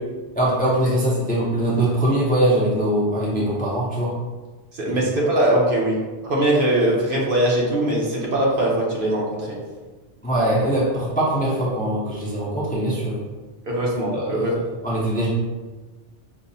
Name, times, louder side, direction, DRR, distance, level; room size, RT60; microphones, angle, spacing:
voice 1, 0.4-4.1 4.9-5.0 10.2-13.2 14.1-14.5 14.8-15.3, right 1 dB, 15° left, -6 dB, 0.4 m, -22 dB
voice 2, 4.7-6.0 6.2-9.6 13.7-14.5, right 1 dB, 55° right, -3 dB, 0.8 m, -21 dB
5.3 x 2.0 x 2.6 m, 1.3 s
omnidirectional pair, 1.2 m